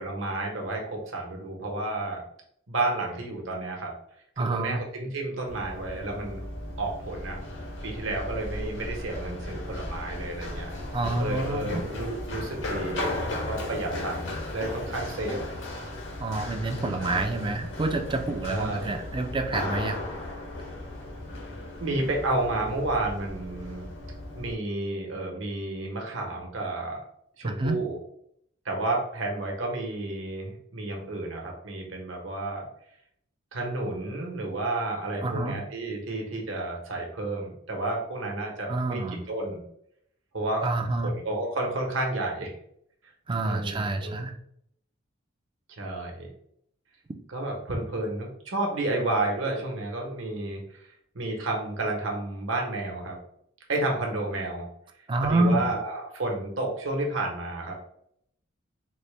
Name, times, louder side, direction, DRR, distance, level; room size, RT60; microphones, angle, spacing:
voice 1, 0.0-2.2 2.7-3.9 4.4-6.4 6.8-7.4 7.8-10.7 11.2-15.4 17.0-17.5 18.5-19.0 21.8-23.9 24.3-27.0 27.4-28.0 28.6-32.7 33.5-39.6 40.3-40.6 41.0-42.5 43.4-44.2 45.8-46.3 47.3-50.8 51.1-53.2 53.7-54.7 55.2-57.7, right 2 dB, 65° right, 1 dB, 1.0 m, -31 dB
voice 2, 4.4-4.8 10.9-11.8 16.2-20.0 27.4-27.8 35.2-35.6 38.7-39.2 40.6-41.1 43.3-44.3 55.1-55.7, right 2 dB, 25° right, 5 dB, 0.4 m, -28 dB
Run, 5.5-24.5, left 1 dB, 65° left, 0.9 m, -36 dB
4.1 x 2.1 x 3.2 m, 0.70 s
head